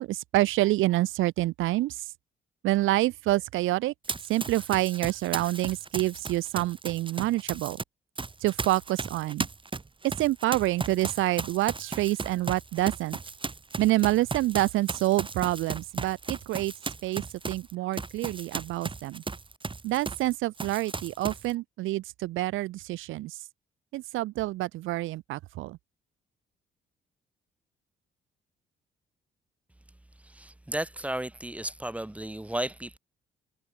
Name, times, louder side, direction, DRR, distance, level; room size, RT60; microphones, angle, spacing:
voice 1, 0.0-2.0 2.6-3.9 4.3-7.8 8.4-9.5 10.0-13.2 13.8-16.7 17.0-19.2 19.8-23.4 23.9-25.8, right 17 dB, 90° right, 1.0 m, -27 dB
Run, 4.0-7.8 8.2-20.3 20.6-21.5, right 4 dB, 25° right, 3.7 m, -36 dB
voice 2, 30.2-33.0, right 1 dB, 5° right, 1.5 m, -34 dB
cardioid pair, 90°, 20 cm